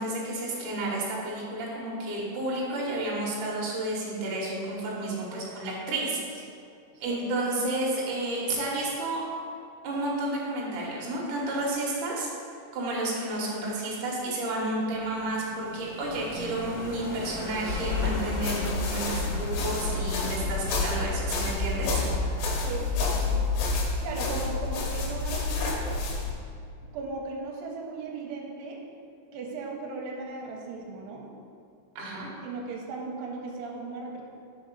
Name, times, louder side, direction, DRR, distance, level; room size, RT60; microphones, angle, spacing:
voice 1, 0.0-6.4 7.0-9.2 9.8-12.3 12.7-22.5 32.0-32.3, right 2 dB, 65° right, -4 dB, 2.4 m, -31 dB
voice 2, 5.4-5.8 6.9-7.4 22.6-22.9 23.2-23.4 24.0-25.7 26.9-28.8 29.3-31.3 32.4-34.2, right 3 dB, 90° right, 0 dB, 2.7 m, -37 dB
sound 1, 14.6-22.7, left 1 dB, 50° left, 2.1 m, -40 dB
sound 2, 17.7-26.3, left 3 dB, 80° left, 2.9 m, -29 dB
5.3 x 4.9 x 5.3 m, 2.4 s
omnidirectional pair, 4.7 m